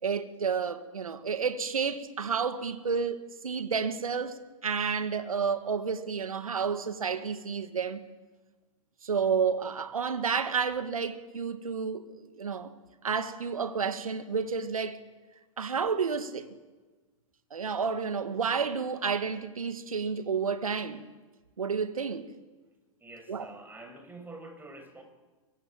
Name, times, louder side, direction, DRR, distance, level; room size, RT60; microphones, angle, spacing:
voice 1, 0.0-8.1 9.0-12.7 13.0-15.0 15.6-16.5 17.5-21.0 21.6-22.3 23.3-23.5, right 6 dB, 85° right, 2.0 m, -30 dB
voice 2, 23.0-25.0, right 2 dB, 10° right, 6.3 m, -46 dB
25.5 x 23.0 x 9.2 m
hypercardioid pair, 100°, 18 cm